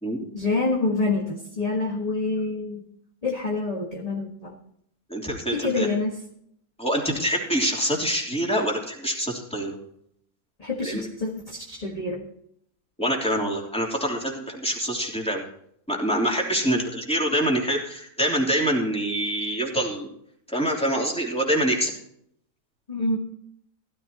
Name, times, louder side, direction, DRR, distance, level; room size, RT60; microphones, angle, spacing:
voice 1, 0.3-2.8 3.2-4.6 5.5-6.2 10.6-12.3 22.9-23.2, left 3 dB, 25° left, -1 dB, 1.7 m, -27 dB
voice 2, 5.1-5.9 6.8-9.8 10.8-11.1 13.0-15.4 15.9-20.1 20.5-21.9, equal, 5° left, -1 dB, 3.1 m, -25 dB
15.5 x 14.0 x 2.9 m, 0.68 s
omnidirectional pair, 1.8 m